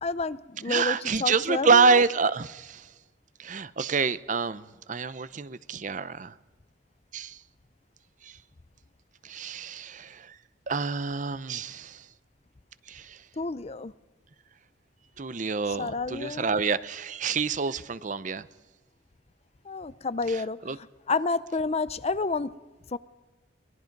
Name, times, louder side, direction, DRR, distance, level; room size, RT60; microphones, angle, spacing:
voice 1, 0.0-2.0 13.4-13.9 15.7-16.5 19.7-22.5 22.9-23.0, left 3 dB, 35° left, 0.5 m, -30 dB
voice 2, 0.7-2.9 3.4-6.3 7.1-7.4 8.2-8.4 9.2-10.3 10.7-12.1 12.9-13.2 15.2-18.5 20.3-20.8, right 5 dB, 40° right, 0.6 m, -27 dB
23.5 x 20.5 x 5.3 m
head